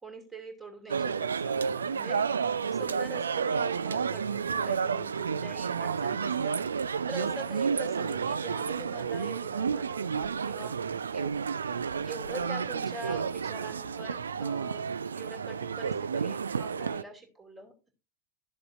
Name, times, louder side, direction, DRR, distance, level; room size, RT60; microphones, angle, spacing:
voice 1, 0.0-2.5 2.7-11.3 11.9-17.9, right 2 dB, 15° right, 4 dB, 2.6 m, -44 dB
sound 1, 0.9-17.0, right 6 dB, 70° right, 0.4 m, -31 dB
13.0 x 6.7 x 2.6 m, 0.32 s
figure-of-eight pair, 90°, 0 cm